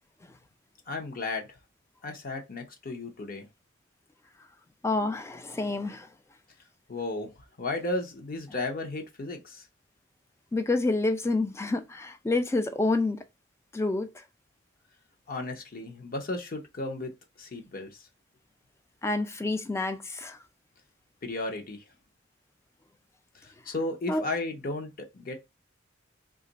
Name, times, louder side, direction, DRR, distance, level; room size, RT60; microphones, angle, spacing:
voice 1, 0.9-1.5 2.0-3.5 6.9-9.7 15.3-17.1 17.4-18.1 21.2-21.8 23.3-25.3, left 2 dB, 45° left, 0.8 m, -34 dB
voice 2, 4.8-6.1 10.5-13.2 13.7-14.1 19.0-20.4 24.1-24.2, left 2 dB, 15° left, 0.4 m, -28 dB
3.0 x 2.5 x 3.9 m
head